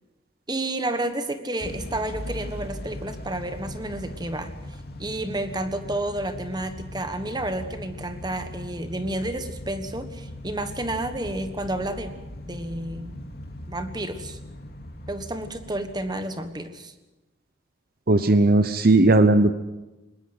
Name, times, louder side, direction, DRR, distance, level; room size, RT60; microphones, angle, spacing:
voice 1, 0.5-4.5 5.0-12.1 12.5-13.1 13.7-14.4 15.1-16.9, right 1 dB, 20° right, 9 dB, 1.4 m, -30 dB
Motor vehicle (road) / Engine starting / Accelerating revving vroom, 1.6-16.6, left 1 dB, 55° left, 2.6 m, -39 dB
voice 2, 18.1-19.5, right 2 dB, 50° right, 11 dB, 0.9 m, -17 dB
21.5 x 19.5 x 7.9 m, 1.1 s
head